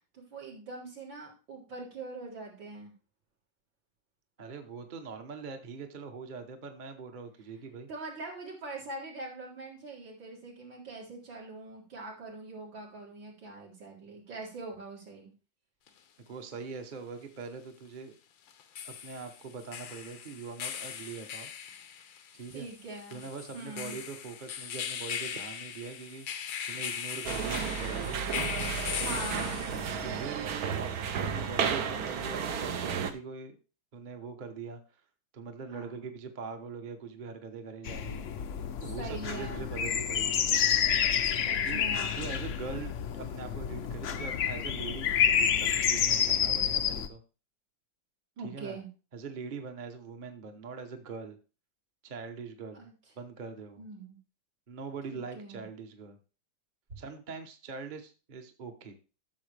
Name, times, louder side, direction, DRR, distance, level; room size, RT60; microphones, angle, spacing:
voice 1, 0.1-2.9 7.9-15.3 22.5-23.2 23.5-24.0 28.9-29.7 35.7-36.1 39.0-39.7 41.4-42.4 46.0-46.1 48.4-48.9 52.7-52.9 53.8-54.2 55.1-55.6, right 2 dB, 80° right, -4 dB, 4.0 m, -43 dB
voice 2, 4.4-7.9 16.3-18.1 18.8-21.5 22.3-22.7 23.1-28.2 28.9-29.2 30.0-33.6 33.9-34.8 35.3-38.3 38.8-40.4 41.6-41.8 42.2-47.2 48.4-48.8 49.1-51.4 52.0-52.8 53.2-53.8 54.7-56.2 57.0-59.0, right 5 dB, 35° right, 5 dB, 0.9 m, -42 dB
sound 1, 15.9-16.0 18.5-30.1, left 8 dB, 85° left, 1.7 m, -39 dB
sound 2, 27.2-33.1, right 6 dB, 60° right, 1.2 m, -33 dB
sound 3, 37.8-47.1, left 8 dB, 60° left, 0.8 m, -29 dB
13.0 x 6.9 x 3.3 m, 0.34 s
omnidirectional pair, 2.0 m